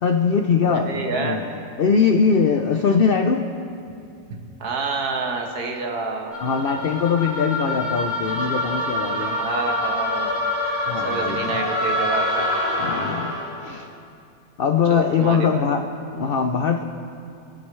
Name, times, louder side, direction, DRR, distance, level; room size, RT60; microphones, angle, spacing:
voice 1, 0.0-3.5 6.4-9.4 10.9-11.5 12.8-13.9 14.6-15.9 16.1-16.8, left 5 dB, 80° left, 6 dB, 0.5 m, -21 dB
voice 2, 0.7-1.4 4.3-6.4 9.4-10.3 11.0-12.5 14.9-15.6, right 4 dB, 75° right, 2 dB, 1.7 m, -28 dB
sound 1, 6.3-13.6, left 1 dB, 20° left, 2.6 m, -25 dB
26.0 x 8.7 x 3.2 m, 2.5 s
omnidirectional pair, 1.7 m